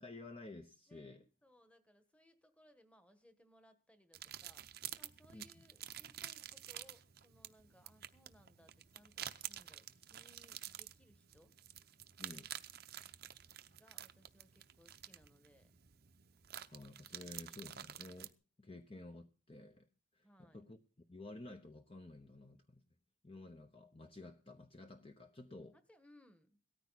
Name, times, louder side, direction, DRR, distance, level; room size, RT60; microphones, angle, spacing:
voice 1, 0.0-1.2 5.3-5.5 12.2-12.5 16.7-18.3 18.6-19.9 20.1-20.8 21.1-22.8 23.2-25.7, left 2 dB, 25° left, 6 dB, 0.9 m, -52 dB
voice 2, 0.9-4.7 5.0-11.5 13.7-15.8 20.2-20.6 25.7-26.6, equal, 5° left, 9 dB, 1.4 m, -66 dB
sound 1, 4.1-18.3, right 11 dB, 50° right, 0.7 m, -50 dB
17.5 x 14.0 x 4.1 m, 0.35 s
head